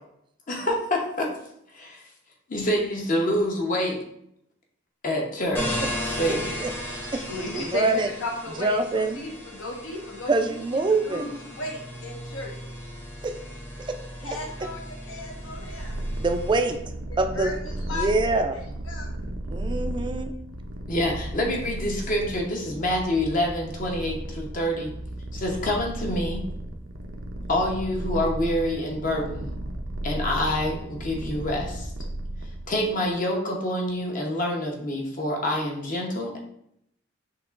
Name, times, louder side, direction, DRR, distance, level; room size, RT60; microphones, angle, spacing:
voice 1, 0.5-1.3 1.7-2.0 2.5-4.0 5.0-6.6 7.1-7.2 7.5-7.7 20.9-24.9 25.3-26.4 27.5-29.5 30.0-31.9 32.7-36.4, left 1 dB, 40° left, 0 dB, 0.8 m, -27 dB
sound 1, 5.5-16.8, left 1 dB, 10° left, 0.7 m, -36 dB
voice 2, 6.6-7.2 7.5-8.1 8.6-9.2 10.3-11.3 13.2-13.3 13.9-14.0 16.2-16.8 17.2-17.6 17.9-18.6 19.5-20.3, right 3 dB, 25° right, 6 dB, 0.3 m, -25 dB
voice 3, 7.2-12.6 14.2-16.0 17.3-18.1 18.5-19.1, left 2 dB, 75° left, -1 dB, 1.1 m, -35 dB
Purr, 15.2-32.9, right 1 dB, 80° right, 0.6 m, -34 dB
5.8 x 2.9 x 2.4 m, 0.74 s
head